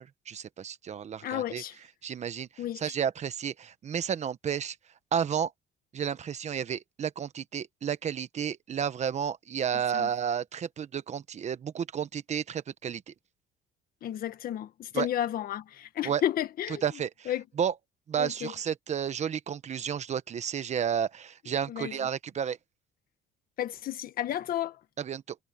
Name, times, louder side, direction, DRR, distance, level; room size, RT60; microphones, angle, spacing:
voice 1, 0.0-1.6 2.0-4.8 5.1-5.5 5.9-13.1 14.9-15.1 16.0-16.2 16.8-17.3 17.6-17.7 18.1-22.6 25.0-25.4, right 8 dB, 40° right, 1.2 m, -32 dB
voice 2, 1.2-1.7 2.6-2.9 9.9-10.1 14.0-16.8 17.3-17.4 18.2-18.5 21.7-22.1 23.6-24.8, left 11 dB, 60° left, 1.6 m, -32 dB
cardioid pair, 110°, 17 cm